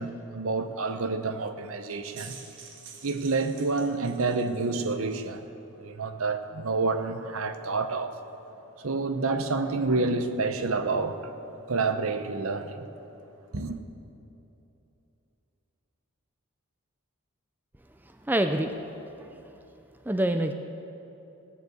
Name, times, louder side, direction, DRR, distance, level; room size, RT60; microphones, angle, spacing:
voice 1, 0.0-2.4 3.0-5.4 5.8-8.2 8.8-11.3 11.7-12.9 13.5-13.8, right 3 dB, 70° right, 9 dB, 0.8 m, -28 dB
sound 1, 1.9-4.9, right 5 dB, 55° right, 1.6 m, -48 dB
voice 2, 18.0-18.7 19.0-19.6 20.0-20.5, right 1 dB, 10° right, 6 dB, 0.4 m, -28 dB
17.5 x 7.1 x 8.0 m, 3.0 s
head